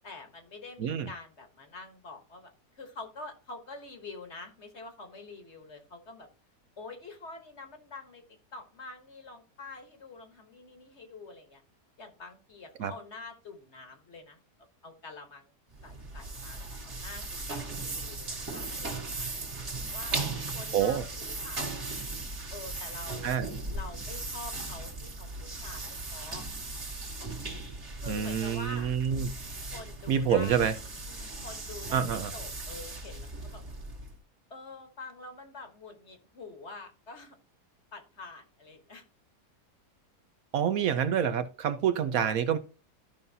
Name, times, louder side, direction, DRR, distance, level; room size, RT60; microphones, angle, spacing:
voice 1, 0.0-6.3 6.8-8.2 8.5-11.6 12.0-14.4 14.8-15.5 15.8-19.3 19.9-22.0 22.5-23.4 23.7-26.4 28.0-28.9 29.7-30.7 31.0-33.7 34.5-37.4 37.9-39.0, left 3 dB, 45° left, 1.5 m, -46 dB
voice 2, 0.8-1.1 12.8-12.9 20.7-21.0 23.2-23.5 28.1-29.3 30.1-30.7 31.9-32.3 40.5-42.6, right 8 dB, 65° right, 1.0 m, -27 dB
sound 1, 15.7-34.2, right 2 dB, 45° right, 2.1 m, -38 dB
13.5 x 5.4 x 2.7 m
omnidirectional pair, 1.7 m